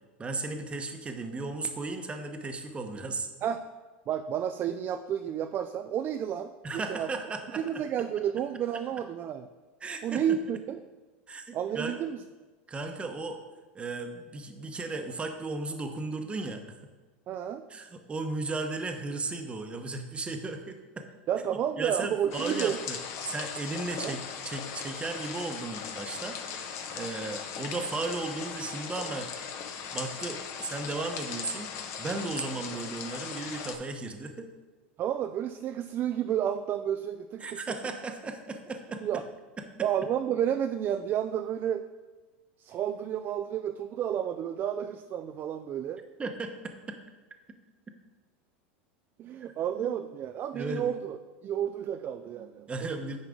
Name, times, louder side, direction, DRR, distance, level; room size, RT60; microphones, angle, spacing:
voice 1, 0.2-3.3 6.6-7.8 9.8-10.4 11.3-12.0 12.7-13.4 13.7-16.6 17.7-21.1 21.5-23.0 23.2-26.4 26.9-29.3 29.9-31.7 32.0-34.5 37.4-39.0 39.6-39.7 46.2-47.0 49.8-49.9 50.5-50.9 52.7-53.2, right 3 dB, 20° right, 5 dB, 0.9 m, -35 dB
voice 2, 4.1-7.1 7.6-9.5 10.0-10.8 11.5-12.2 17.3-17.6 21.3-22.8 24.0-24.2 35.0-37.6 39.0-39.2 39.8-41.8 42.6-46.0 49.2-51.2 51.4-53.0, right 9 dB, 35° right, 8 dB, 0.3 m, -31 dB
sound 1, 22.3-33.8, left 7 dB, 50° left, 0.9 m, -38 dB
9.3 x 4.7 x 3.7 m, 1.3 s
hypercardioid pair, 105°, 6 cm